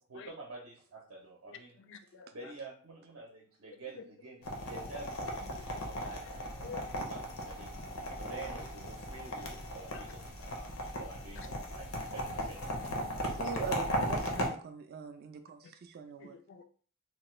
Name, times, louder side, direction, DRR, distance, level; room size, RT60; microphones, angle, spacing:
voice 1, 0.1-1.8 2.3-7.7 8.2-12.8 13.2-13.5, right 3 dB, 75° right, -1 dB, 0.6 m, -49 dB
voice 2, 1.9-2.3 5.6-5.8 6.6-6.9 9.9-10.0 16.2-16.6, left 6 dB, 60° left, 8 dB, 0.3 m, -48 dB
sound 1, 4.4-14.5, equal, 85° left, 0.7 m, -37 dB
voice 3, 13.4-16.4, right 5 dB, 50° right, 6 dB, 0.3 m, -41 dB
2.9 x 2.1 x 3.1 m, 0.43 s
head